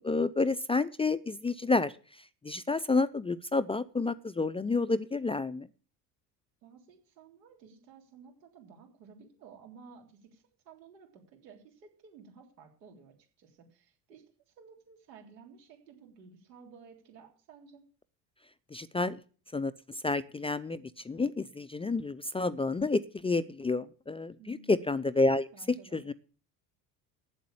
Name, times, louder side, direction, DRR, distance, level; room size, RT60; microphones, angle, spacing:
voice 1, 0.0-1.9 2.4-5.7 18.7-19.2 19.5-26.1, left 3 dB, 10° left, 16 dB, 0.4 m, -30 dB
voice 2, 6.6-17.8 24.4-24.8 25.5-26.0, right 5 dB, 85° right, 2 dB, 3.5 m, -55 dB
8.4 x 7.6 x 8.7 m, 0.40 s
hypercardioid pair, 70°, 48 cm